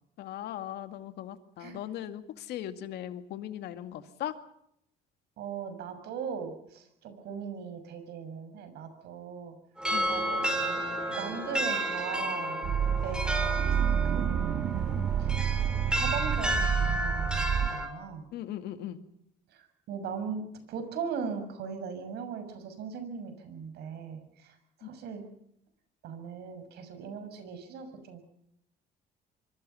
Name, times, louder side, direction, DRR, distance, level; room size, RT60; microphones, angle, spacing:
voice 1, 0.2-4.3 9.9-10.1 15.0-15.1 18.3-19.0 24.8-24.9, left 12 dB, 75° left, 9 dB, 2.2 m, -38 dB
voice 2, 5.4-9.6 10.1-10.8 11.1-12.6 13.0-13.6 14.0-14.4 15.2-15.3 15.9-18.2 19.5-25.2 26.0-28.2, right 6 dB, 75° right, 9 dB, 6.5 m, -39 dB
sound 1, 9.8-17.9, right 1 dB, 5° right, 5.9 m, -32 dB
sound 2, 12.6-17.7, right 8 dB, 60° right, 1.5 m, -28 dB
25.5 x 25.0 x 5.7 m, 0.74 s
cardioid pair, 110°, 17 cm